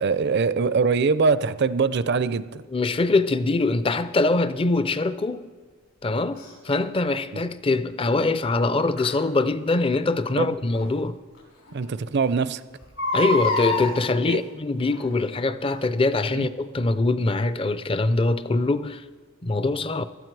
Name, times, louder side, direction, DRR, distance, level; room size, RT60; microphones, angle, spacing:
voice 1, 0.0-2.6 7.3-7.4 10.4-10.5 11.7-12.6 14.3-14.4 16.3-16.5, right 5 dB, 50° right, 0.4 m, -23 dB
voice 2, 2.7-5.5 6.0-11.2 13.1-19.0 19.4-20.1, left 3 dB, 25° left, 0.4 m, -23 dB
Crying sobbing, 6.4-6.5 9.0-9.2 10.7-10.8 11.4-11.5 11.7-11.8 12.8-13.9 14.9-15.2 15.8-15.9, left 2 dB, 70° left, 4.0 m, -26 dB
16.5 x 13.0 x 4.7 m
head